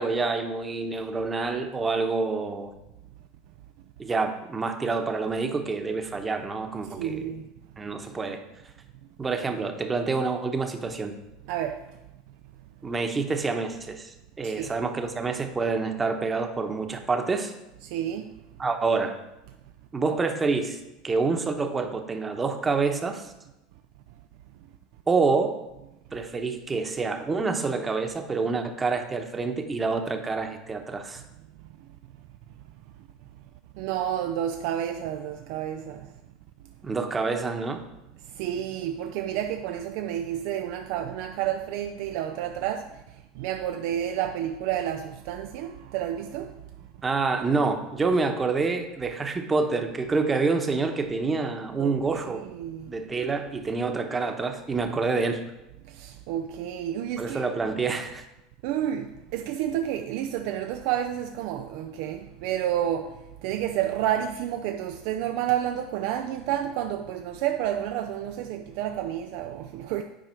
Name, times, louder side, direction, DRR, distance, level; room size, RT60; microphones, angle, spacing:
voice 1, 0.0-2.7 4.0-7.3 7.8-8.4 9.2-11.1 12.8-17.5 18.6-19.1 19.9-20.8 21.0-23.3 25.1-25.5 26.1-31.2 36.8-37.8 47.0-52.4 52.9-55.4 57.2-58.2, right 4 dB, 20° right, 1.0 m, -27 dB
voice 2, 6.9-7.5 11.5-12.0 14.4-14.8 17.8-18.4 31.8-31.9 33.7-36.1 38.2-46.6 51.8-52.0 52.2-52.9 55.8-57.4 58.6-70.0, right 11 dB, 65° right, 0.4 m, -30 dB
9.1 x 4.7 x 4.5 m
hypercardioid pair, 85°, 0 cm